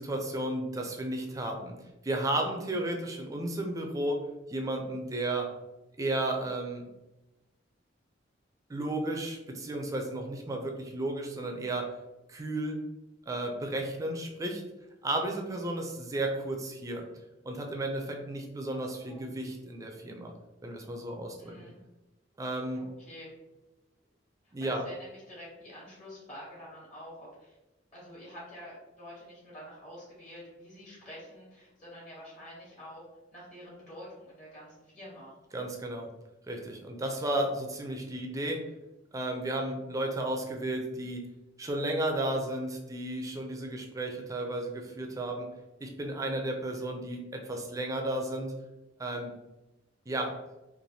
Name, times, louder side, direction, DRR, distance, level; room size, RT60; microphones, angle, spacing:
voice 1, 0.0-1.7 2.0-4.2 4.5-5.5 6.0-6.9 8.7-11.9 12.3-12.8 13.3-14.6 15.0-17.0 17.4-20.3 20.6-21.7 22.4-22.8 24.5-24.8 35.5-36.1 36.5-38.7 39.1-41.3 41.6-45.5 45.8-48.6 49.0-49.3 50.1-50.4, right 1 dB, 20° right, 2 dB, 0.4 m, -33 dB
voice 2, 18.7-19.3 21.4-21.8 22.7-23.3 24.4-27.6 27.9-33.0 33.3-35.3 46.7-46.9, equal, 40° left, -6 dB, 1.1 m, -48 dB
3.2 x 2.5 x 2.6 m, 1.0 s
head